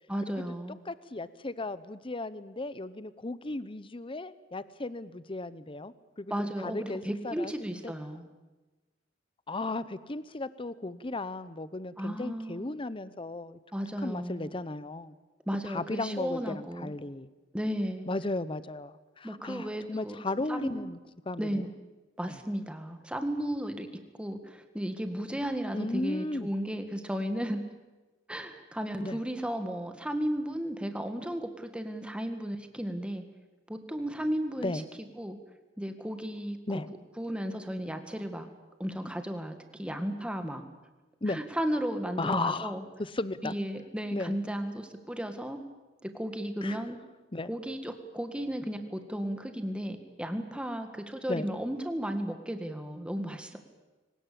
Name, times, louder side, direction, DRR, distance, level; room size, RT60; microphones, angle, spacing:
voice 1, 0.1-0.8 6.3-8.3 12.0-12.7 13.7-14.5 15.5-16.9 17.5-18.1 19.2-20.2 20.5-20.8 21.4-21.7 22.2-23.9 24.2-27.6 28.3-33.2 33.7-34.8 35.2-35.4 35.8-36.8 37.2-38.5 38.8-40.6 41.3-42.8 43.4-45.6 46.0-47.0 47.5-53.6, equal, 5° right, 7 dB, 1.8 m, -34 dB
voice 2, 0.9-6.3 6.6-7.9 9.5-13.6 14.0-15.1 15.6-17.3 18.1-21.0 21.3-21.6 22.3-22.4 25.7-26.5 29.0-29.2 34.6-34.9 36.7-36.9 41.2-41.4 42.2-42.7 43.0-43.5 44.1-44.4 46.6-46.8 47.3-47.5 51.3-51.5, left 2 dB, 30° left, 15 dB, 0.8 m, -35 dB
23.0 x 19.5 x 8.6 m, 1.2 s
head